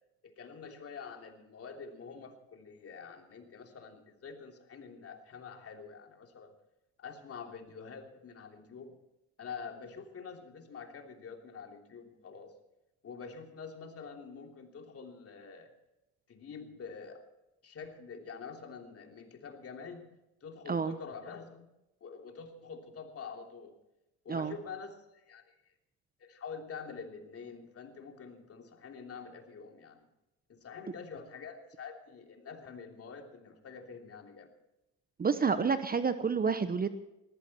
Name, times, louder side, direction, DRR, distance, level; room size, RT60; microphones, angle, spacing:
voice 1, 0.2-6.5 7.0-9.0 9.4-12.5 13.0-15.7 16.3-17.2 17.6-20.1 20.4-21.7 22.0-23.7 24.2-25.7 26.2-30.1 30.5-34.5, left 5 dB, 45° left, 3 dB, 3.2 m, -46 dB
voice 2, 35.2-36.9, right 5 dB, 30° right, 11 dB, 1.1 m, -29 dB
20.0 x 14.5 x 4.4 m, 0.91 s
supercardioid pair, 70°, 32 cm